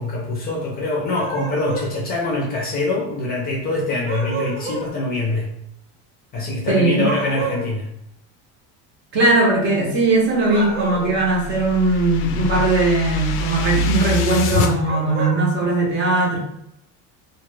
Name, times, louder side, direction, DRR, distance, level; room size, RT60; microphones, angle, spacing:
voice 1, 0.0-5.5 6.3-7.9, left 2 dB, 30° left, -3 dB, 0.5 m, -24 dB
sound 1, 1.1-1.9 4.0-4.9 7.1-7.7 10.4-11.2 14.8-15.4, right 2 dB, 65° right, 1.0 m, -29 dB
voice 2, 6.7-7.1 9.1-16.4, right 2 dB, 35° right, -3 dB, 0.7 m, -19 dB
sound 2, 10.7-14.7, left 3 dB, 80° left, 0.5 m, -25 dB
2.2 x 2.2 x 3.1 m, 0.76 s
cardioid pair, 170°, 33 cm